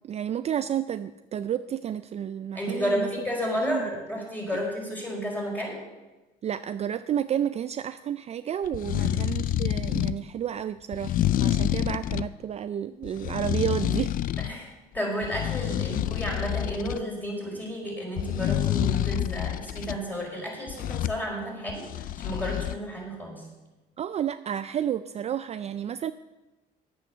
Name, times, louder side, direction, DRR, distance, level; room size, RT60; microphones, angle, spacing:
voice 1, 0.0-3.1 3.6-3.9 4.5-4.6 6.4-14.2 24.0-26.1, right 9 dB, 40° right, 12 dB, 0.4 m, -31 dB
voice 2, 2.5-5.8 9.0-9.2 14.4-23.4, equal, 10° left, -2 dB, 4.9 m, -32 dB
sound 1, 8.6-10.2 10.9-12.3 13.0-14.6 15.0-17.0 18.2-20.0 20.7-21.2 21.7-22.8, left 12 dB, 55° left, 0.4 m, -28 dB
10.0 x 8.4 x 6.8 m, 1.1 s
cardioid pair, 110°, 17 cm